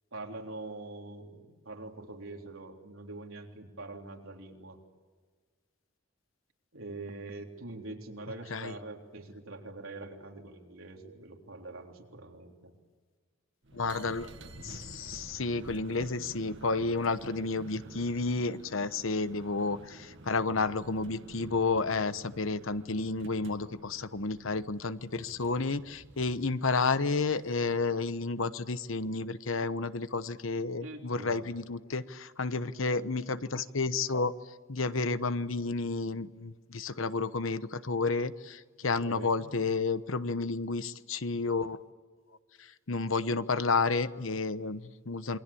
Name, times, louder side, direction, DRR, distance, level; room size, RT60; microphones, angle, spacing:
voice 1, 0.1-4.8 6.7-12.7 30.7-31.5 39.0-39.5, right 2 dB, 90° right, 2 dB, 3.6 m, -44 dB
sound 1, 13.6-28.1, right 2 dB, 65° right, 1.8 m, -51 dB
voice 2, 13.7-14.3 14.6-34.3 34.7-41.8 42.6-45.4, left 3 dB, 75° left, 13 dB, 1.1 m, -31 dB
28.0 x 23.0 x 8.6 m, 1.5 s
head